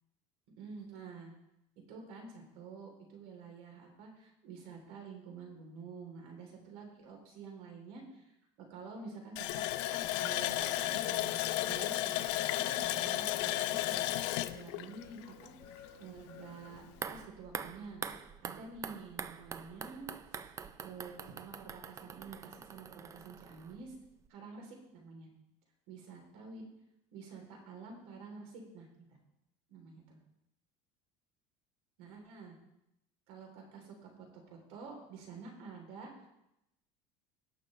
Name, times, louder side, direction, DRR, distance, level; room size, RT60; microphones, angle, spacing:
voice 1, 0.6-1.3 1.9-8.3 8.6-16.8 17.1-18.0 18.4-20.5 20.8-23.9 24.3-25.3 25.9-26.6 27.1-29.1 29.7-30.2 32.0-32.5 33.3-36.3, right 4 dB, 75° right, 1 dB, 3.3 m, -49 dB
sound 1, 9.0-17.2, left 5 dB, 35° left, 4.0 m, -59 dB
Water tap faucet, 9.4-15.9 16.2-16.3 16.7-16.9, left 15 dB, 85° left, 0.5 m, -33 dB
sound 2, 16.9-24.0 24.3-24.4, right 7 dB, 20° right, 0.4 m, -45 dB
17.5 x 6.5 x 3.2 m, 0.84 s
cardioid pair, 155°, 14 cm